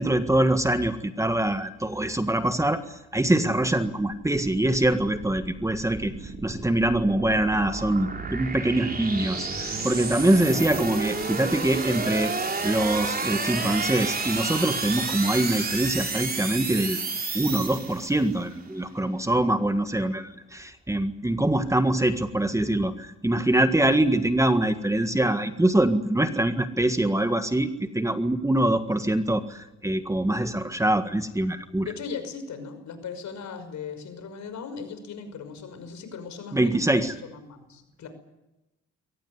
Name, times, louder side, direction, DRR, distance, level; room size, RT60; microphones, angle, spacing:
voice 1, 0.0-17.0 17.3-31.9 36.5-37.1, right 1 dB, 10° right, 9 dB, 1.6 m, -24 dB
sound 1, 4.1-18.3, right 4 dB, 30° right, 3.9 m, -31 dB
voice 2, 31.8-38.1, left 5 dB, 70° left, 9 dB, 5.8 m, -38 dB
23.0 x 18.0 x 9.6 m, 0.95 s
cardioid pair, 90°, 30 cm